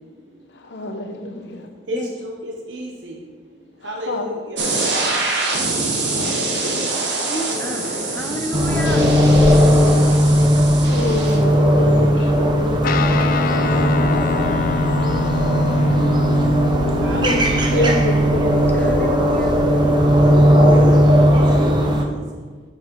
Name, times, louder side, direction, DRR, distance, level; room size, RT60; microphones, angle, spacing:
voice 1, 0.5-1.7 3.8-4.3 6.0-6.8 9.4-9.9 10.9-15.0 17.1-17.4 17.7-18.8 20.2-21.7, left 2 dB, 70° left, 5 dB, 0.9 m, -28 dB
voice 2, 1.9-3.2 3.8-4.7 17.0-18.0 21.3-22.2, equal, 85° right, 1 dB, 0.9 m, -31 dB
sound 1, 4.6-11.4, right 3 dB, 70° right, 1.3 m, -24 dB
voice 3, 7.2-9.1 18.7-19.6, left 1 dB, 10° left, 1 dB, 0.6 m, -30 dB
sound 2, 8.5-22.0, equal, 25° right, 0.8 m, -16 dB
Guitar, 12.8-20.5, left 5 dB, 50° left, 0.3 m, -26 dB
7.6 x 6.2 x 4.6 m, 1.5 s
head